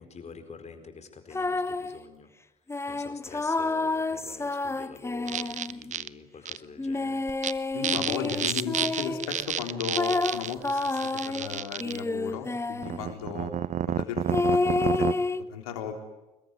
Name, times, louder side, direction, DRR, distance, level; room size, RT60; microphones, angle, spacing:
voice 1, 0.0-7.2, left 5 dB, 35° left, 8 dB, 4.5 m, -47 dB
sound 1, 1.3-2.0 2.7-5.9 6.8-9.3 9.9-13.0 14.3-15.4, left 3 dB, 15° left, 1.1 m, -29 dB
sound 2, 5.3-6.1 6.4-6.6 7.3-7.5 7.8-12.0 12.8-15.1, right 9 dB, 40° right, 0.9 m, -30 dB
voice 2, 7.7-13.5 13.9-15.1 15.5-15.9, left 7 dB, 75° left, 4 dB, 3.9 m, -35 dB
25.5 x 22.0 x 9.4 m, 1.0 s
figure-of-eight pair, 50°, 19 cm